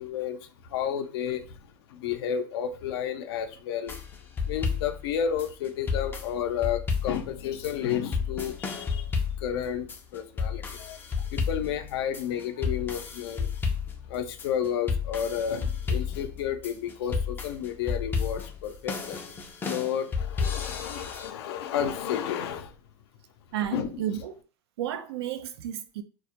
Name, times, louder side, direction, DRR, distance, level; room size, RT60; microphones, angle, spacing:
voice 1, 0.0-1.5 1.9-4.0 4.5-9.1 9.4-11.0 11.3-13.5 14.1-19.3 19.6-22.7 23.7-23.9, left 9 dB, 75° left, 0.5 m, -31 dB
sound 1, 3.9-21.3, left 5 dB, 15° left, 0.4 m, -32 dB
voice 2, 23.5-24.4 24.8-26.0, right 10 dB, 75° right, 0.4 m, -32 dB
2.2 x 2.0 x 2.8 m
hypercardioid pair, 115°, 13 cm